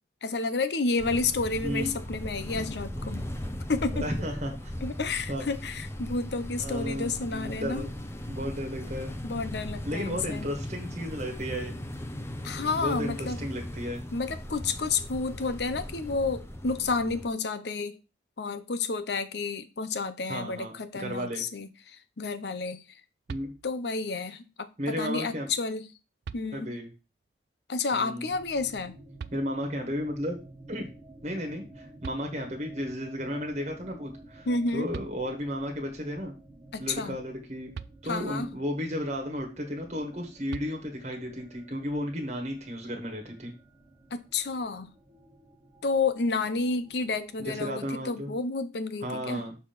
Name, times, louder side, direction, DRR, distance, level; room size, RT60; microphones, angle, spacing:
voice 1, 0.2-3.3 3.7-4.1 4.8-7.9 9.2-10.5 12.4-13.4 14.1-18.0 18.4-22.8 23.6-24.7 25.0-25.9 26.3-26.7 27.7-28.9 34.5-34.9 36.7-37.2 38.1-38.5 44.1-44.9 45.8-49.4, left 4 dB, 70° left, 0.7 m, -30 dB
sound 1, 1.0-17.3, left 1 dB, 15° left, 0.6 m, -38 dB
voice 2, 4.0-4.7 5.3-5.4 6.6-7.9 8.3-9.1 9.8-11.7 12.7-14.0 20.3-21.4 23.3-23.5 24.8-25.5 26.5-26.9 27.9-28.3 29.3-30.4 30.7-30.9 31.2-34.5 34.7-36.3 36.8-37.7 38.0-43.5 47.4-48.3 49.0-49.5, equal, 40° right, 1.5 m, -33 dB
sound 2, 23.3-24.0 25.5-25.6 26.2-27.0 29.2-29.9 31.7-31.8 32.0-32.9 34.6-34.7 34.9-35.7 37.7-38.5 40.5-41.3, right 6 dB, 65° right, 0.3 m, -44 dB
sound 3, 28.3-48.1, right 2 dB, 20° right, 1.0 m, -52 dB
6.6 x 3.5 x 5.8 m
head